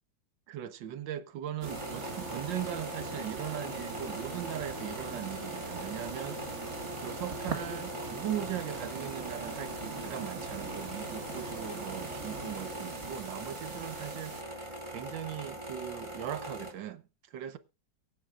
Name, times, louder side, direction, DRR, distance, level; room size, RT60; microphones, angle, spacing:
voice 1, 0.5-17.6, right 11 dB, 80° right, 1.5 m, -39 dB
sound 1, 1.6-14.4, right 3 dB, 40° right, 1.7 m, -41 dB
sound 2, 1.7-16.7, right 1 dB, 15° right, 3.5 m, -42 dB
23.5 x 9.3 x 2.4 m
omnidirectional pair, 2.0 m